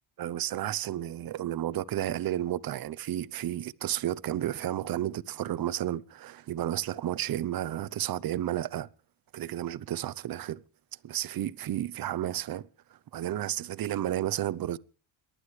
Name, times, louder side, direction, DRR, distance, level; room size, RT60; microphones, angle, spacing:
voice 1, 0.2-8.9 9.3-10.6 11.0-12.7 13.1-14.8, right 12 dB, 45° right, 0.8 m, -32 dB
29.0 x 11.5 x 3.2 m
cardioid pair, 100°, 49 cm